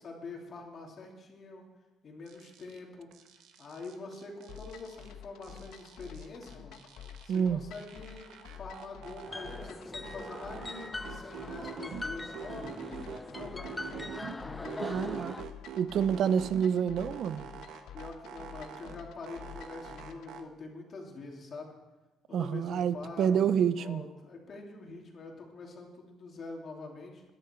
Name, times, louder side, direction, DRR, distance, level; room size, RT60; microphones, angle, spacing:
voice 1, 0.0-1.6 2.0-3.1 3.6-6.8 7.2-12.7 13.3-15.3 17.9-21.7 22.3-27.2, left 3 dB, 35° left, 0 dB, 2.8 m, -45 dB
sound 1, 2.3-2.8 3.1-5.1 5.4-7.4 7.7-9.7 10.0-12.0 12.3-14.4 14.6-16.7 16.9-19.0 19.3-20.4, right 8 dB, 70° right, 1.3 m, -45 dB
sound 2, 4.5-20.3, left 9 dB, 70° left, 1.0 m, -50 dB
voice 2, 7.3-7.6 14.8-15.3 15.8-17.5 22.3-24.0, right 8 dB, 50° right, 14 dB, 0.6 m, -28 dB
sound 3, 9.3-15.4, left 2 dB, 10° left, 0.4 m, -41 dB
22.0 x 10.5 x 4.4 m, 1.1 s
cardioid pair, 165°, 0 cm